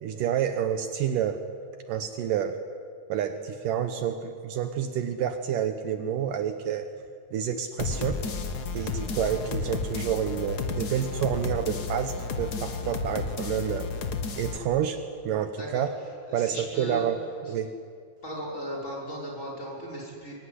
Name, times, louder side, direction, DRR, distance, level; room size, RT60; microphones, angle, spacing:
voice 1, 0.0-1.4 1.9-2.6 3.1-6.9 7.3-8.2 8.7-13.9 14.4-15.9 16.3-17.2 17.5-17.7, right 9 dB, 70° right, 8 dB, 2.5 m, -29 dB
sound 1, 7.8-14.6, left 4 dB, 85° left, 0.8 m, -32 dB
voice 2, 16.3-17.1 18.2-20.3, equal, 20° left, -2 dB, 6.1 m, -36 dB
24.0 x 24.0 x 9.9 m, 2.2 s
omnidirectional pair, 4.2 m